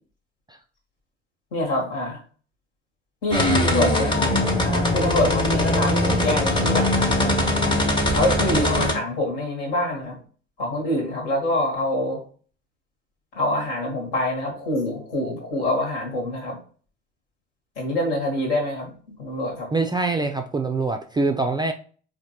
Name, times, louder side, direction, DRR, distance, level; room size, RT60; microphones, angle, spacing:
voice 1, 1.5-2.2 3.2-4.2 4.6-7.3 8.1-10.2 10.6-12.2 13.3-16.5 17.8-18.9 19.2-19.7, left 1 dB, 70° left, 1.6 m, -25 dB
sound 1, 3.3-8.9, left 1 dB, 15° left, 0.9 m, -21 dB
voice 2, 19.7-21.7, right 3 dB, 15° right, 0.3 m, -24 dB
4.4 x 2.6 x 2.8 m
hypercardioid pair, 55°, 36 cm